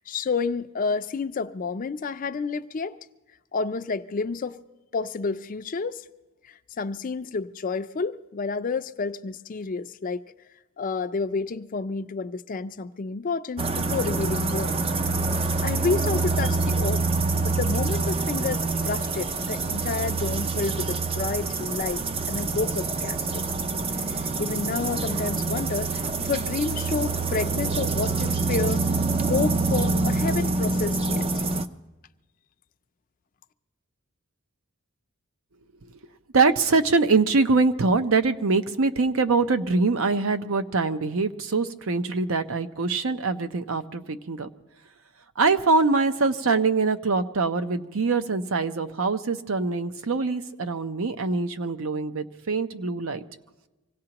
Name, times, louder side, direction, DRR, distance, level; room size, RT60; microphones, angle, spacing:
voice 1, 0.0-3.0 3.5-4.6 4.9-6.0 6.5-10.3 10.8-14.8 15.6-17.0 17.4-22.0 22.3-23.5 24.1-28.9 29.3-31.3, left 4 dB, 40° left, 0.4 m, -30 dB
sound 1, 13.6-31.7, right 3 dB, 25° right, 0.4 m, -26 dB
voice 2, 36.3-44.5 45.4-53.2, right 4 dB, 70° right, 0.6 m, -23 dB
25.0 x 17.0 x 2.9 m
head